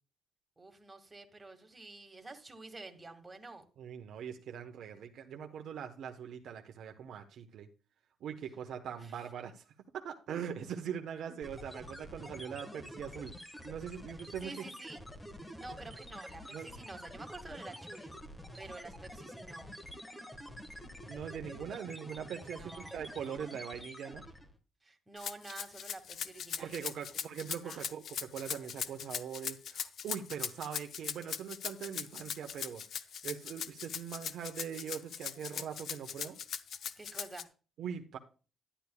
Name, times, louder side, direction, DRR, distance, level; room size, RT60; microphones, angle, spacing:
voice 1, 0.6-3.6 8.8-9.2 14.4-15.0 15.4-18.1 18.5-19.7 22.5-23.0 24.8-27.0 27.5-27.9 37.0-37.5, right 2 dB, 20° right, 5 dB, 1.9 m, -49 dB
voice 2, 3.8-7.7 8.2-9.6 9.9-13.3 13.6-14.6 16.5-16.7 21.1-24.2 26.6-32.8 33.2-36.4 37.8-38.2, right 8 dB, 75° right, 4 dB, 1.0 m, -42 dB
sound 1, 11.4-24.6, equal, 10° left, 1.6 m, -48 dB
Rattle (instrument), 25.2-37.4, left 8 dB, 65° left, 0.6 m, -39 dB
11.5 x 10.0 x 2.3 m, 0.35 s
cardioid pair, 90°, 0 cm